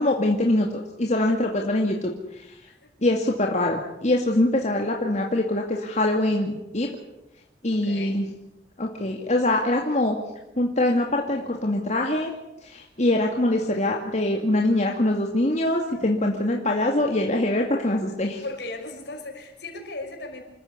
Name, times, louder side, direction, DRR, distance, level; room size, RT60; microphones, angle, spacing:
voice 1, 0.0-2.5 3.0-6.9 7.6-8.3 8.8-10.2 10.6-12.3 12.6-18.4, left 1 dB, 40° left, 1 dB, 2.4 m, -23 dB
voice 2, 7.7-8.2 18.4-20.4, left 2 dB, 70° left, 3 dB, 6.0 m, -36 dB
27.5 x 14.5 x 9.8 m, 0.90 s
head